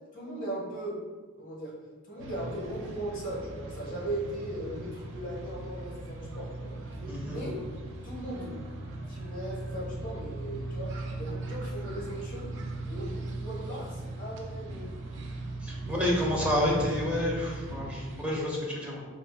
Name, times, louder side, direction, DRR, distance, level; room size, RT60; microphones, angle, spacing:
voice 1, 0.1-1.0 1.4-1.8 2.1-6.8 7.2-7.5 8.0-8.6 9.1-12.5 12.9-15.0 15.8-16.3, right 1 dB, 40° left, -4 dB, 0.9 m, -38 dB
sound 1, 2.2-18.3, right 2 dB, 60° right, 0.3 m, -39 dB
voice 2, 7.1-7.4 15.6-19.0, left 1 dB, 5° right, -4 dB, 0.5 m, -29 dB
3.8 x 2.4 x 2.2 m, 1.4 s
head